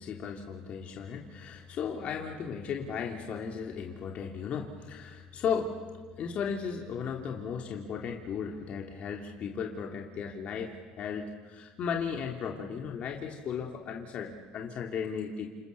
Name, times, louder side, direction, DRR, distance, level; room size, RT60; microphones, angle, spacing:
voice 1, 0.0-5.8 6.2-15.5, left 6 dB, 50° left, 1 dB, 3.1 m, -35 dB
29.0 x 29.0 x 7.0 m, 1.5 s
supercardioid pair, 105°, 3 cm